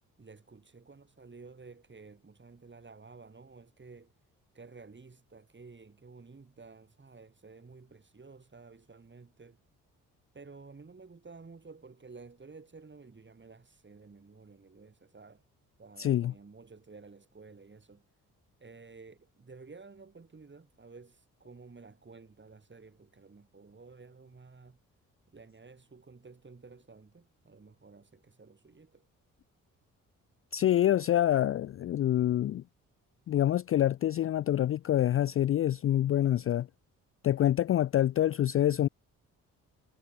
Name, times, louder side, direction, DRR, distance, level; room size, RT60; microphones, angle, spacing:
voice 1, 0.2-4.1 4.5-9.6 10.3-15.4 15.8-18.0 18.6-24.8 25.3-29.1, right 4 dB, 30° right, 2.7 m, -52 dB
voice 2, 16.0-16.3 30.5-32.6 33.3-36.7 37.2-38.9, left 12 dB, 35° left, 0.4 m, -26 dB
hypercardioid pair, 40°, 40 cm